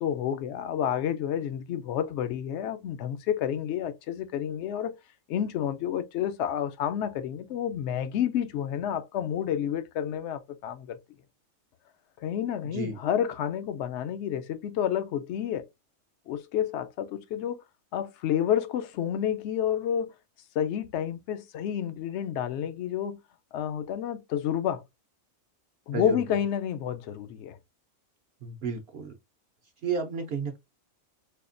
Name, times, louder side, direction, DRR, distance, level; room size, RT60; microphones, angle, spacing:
voice 1, 0.0-4.9 5.3-11.0 12.2-15.7 16.3-17.6 17.9-20.1 20.5-23.2 23.5-24.8 25.9-27.6, left 9 dB, 65° left, 0.7 m, -30 dB
voice 2, 12.6-13.0 25.9-26.2 28.4-29.1 29.8-30.6, right 5 dB, 60° right, 0.7 m, -32 dB
4.2 x 2.3 x 2.5 m
omnidirectional pair, 1.5 m